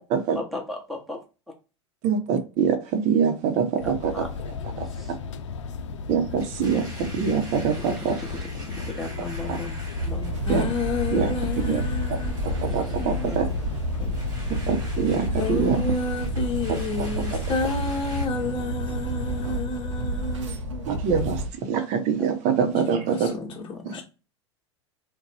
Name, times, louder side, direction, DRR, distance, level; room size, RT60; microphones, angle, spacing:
voice 1, 0.3-1.2 4.1-4.3 4.9-5.1 8.3-8.4 8.7-9.7 10.0-10.3 12.7-12.8 13.1-13.4 14.0-14.1 22.7-24.0, left 2 dB, ahead, 1.0 m, -36 dB
voice 2, 2.0-4.3 4.8-4.9 6.1-8.2 9.5-9.6 10.5-10.6 11.1-11.3 11.7-11.8 12.6-13.5 14.7-15.8 16.7-17.1 20.9-23.3 23.8-24.0, right 6 dB, 50° right, 0.8 m, -24 dB
sound 1, 3.8-19.6, left 4 dB, 85° left, 0.4 m, -34 dB
Domestic sounds home sounds, 6.4-18.3, right 1 dB, 25° right, 1.5 m, -45 dB
sound 2, 10.0-21.5, equal, 85° right, 0.7 m, -30 dB
voice 3, 10.5-12.4 13.0-13.3 15.4-20.8 23.1-23.3 23.9-24.0, left 2 dB, 35° left, 0.8 m, -30 dB
2.6 x 2.2 x 4.1 m
hypercardioid pair, 100°, 15 cm